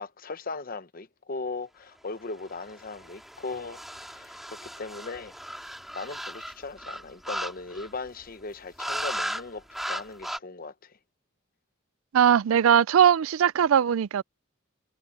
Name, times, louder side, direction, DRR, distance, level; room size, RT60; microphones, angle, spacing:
voice 1, 0.0-5.3 5.6-11.0, left 3 dB, 45° left, 0.8 m, -38 dB
sound 1, 2.5-8.1 8.8-9.4 9.7-10.4, equal, ahead, 2.0 m, -36 dB
voice 2, 12.1-14.2, right 8 dB, 80° right, 0.4 m, -20 dB
head